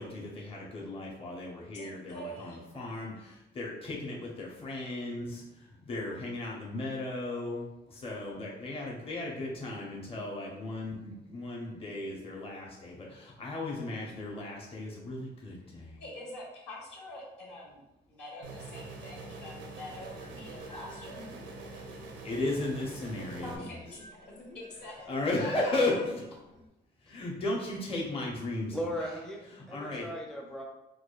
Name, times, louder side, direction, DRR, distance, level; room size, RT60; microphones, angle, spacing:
voice 1, 0.0-16.0 22.2-23.7 25.1-26.2 27.0-28.8 29.6-30.1, left 2 dB, 30° left, -3 dB, 0.8 m, -35 dB
voice 2, 1.7-2.6 16.0-21.3 23.4-25.7, left 1 dB, 70° left, -4 dB, 1.4 m, -45 dB
sound 1, 18.4-23.6, right 3 dB, 80° right, 0.5 m, -44 dB
sound 2, 19.9-26.7, left 1 dB, 85° left, 1.0 m, -53 dB
voice 3, 28.7-30.6, equal, 5° left, -1 dB, 0.5 m, -37 dB
4.7 x 2.2 x 2.3 m, 0.96 s
cardioid pair, 85°, 18 cm